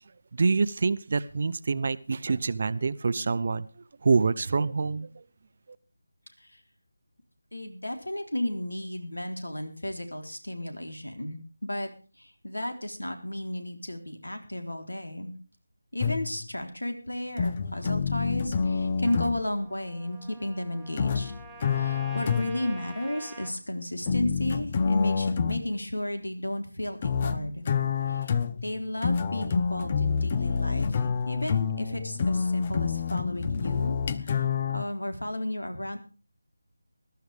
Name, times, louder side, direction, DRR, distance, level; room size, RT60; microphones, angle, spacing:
voice 1, 0.3-3.7 4.0-5.1, right 4 dB, 45° right, 16 dB, 0.8 m, -26 dB
voice 2, 7.5-11.9 12.2-15.3 15.9-21.3 21.7-27.6 28.1-28.3 28.6-34.5 34.7-36.0, left 1 dB, 90° left, 6 dB, 3.8 m, -33 dB
sound 1, 16.0-16.5 17.4-19.5 21.0-22.7 24.1-25.7 27.0-34.8, left 6 dB, 30° left, 0.8 m, -27 dB
Trumpet, 19.0-23.6, right 3 dB, ahead, 1.9 m, -48 dB
21.0 x 13.0 x 3.5 m, 0.36 s
figure-of-eight pair, 165°, 0 cm